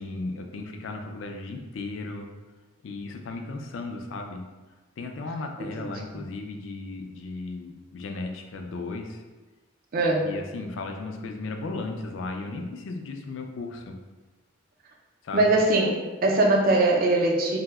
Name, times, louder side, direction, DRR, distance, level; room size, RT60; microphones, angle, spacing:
voice 1, 0.0-2.3 2.8-4.4 5.0-9.2 10.1-13.9 15.2-15.5, left 3 dB, 65° left, 4 dB, 0.4 m, -35 dB
voice 2, 5.6-5.9 9.9-10.3 15.3-17.6, right 2 dB, 45° right, -1 dB, 0.4 m, -22 dB
2.7 x 2.0 x 3.4 m, 1.2 s
head